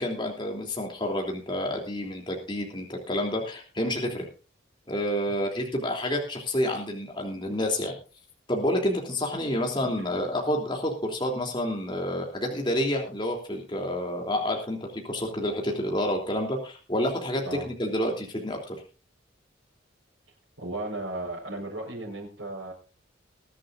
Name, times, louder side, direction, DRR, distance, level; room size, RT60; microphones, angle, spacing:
voice 1, 0.0-4.3 4.9-8.0 8.5-18.8, left 1 dB, 25° left, 1 dB, 3.2 m, -29 dB
voice 2, 20.6-22.7, right 2 dB, 80° right, -6 dB, 5.1 m, -35 dB
21.5 x 11.5 x 2.6 m, 0.33 s
head